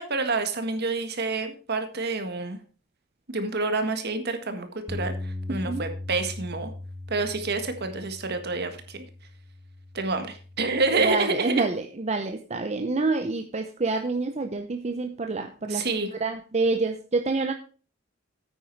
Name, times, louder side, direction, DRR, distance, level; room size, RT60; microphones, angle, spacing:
voice 1, 0.0-2.6 3.3-6.7 7.1-9.1 9.9-11.6 15.7-16.1, right 3 dB, 55° right, 7 dB, 1.7 m, -28 dB
Bass guitar, 4.9-11.1, left 1 dB, 5° right, 1.1 m, -39 dB
voice 2, 5.5-5.8 10.9-17.5, right 3 dB, 35° right, 6 dB, 0.7 m, -27 dB
9.3 x 9.0 x 4.6 m, 0.38 s
head